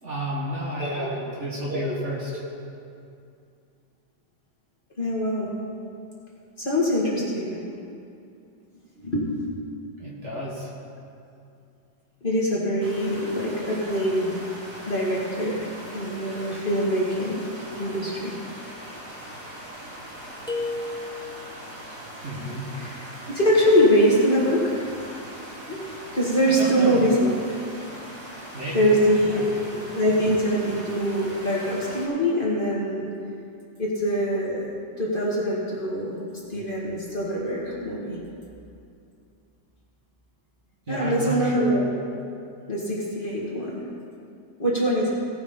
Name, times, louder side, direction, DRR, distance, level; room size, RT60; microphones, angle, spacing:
voice 1, 0.0-2.4 10.0-10.7 22.2-22.7 26.5-27.0 28.5-29.0 29.3-29.7 40.9-41.7, equal, 40° right, -4 dB, 1.8 m, -31 dB
voice 2, 0.8-1.1 1.7-1.8 5.0-5.5 6.6-7.6 9.0-9.3 12.2-14.3 14.9-15.7 15.9-17.4 17.7-18.4 22.7-22.9 23.3-24.8 25.7-25.9 26.1-27.3 28.7-33.1 33.8-36.2 36.5-38.2 40.9-41.9 42.7-43.9 44.6-45.1, equal, 30° left, -6 dB, 1.7 m, -23 dB
sound 1, 12.8-32.1, right 1 dB, 55° right, 2.7 m, -41 dB
sound 2, 20.5-21.6, left 3 dB, 5° left, 0.6 m, -32 dB
17.0 x 6.4 x 5.3 m, 2.5 s
omnidirectional pair, 2.0 m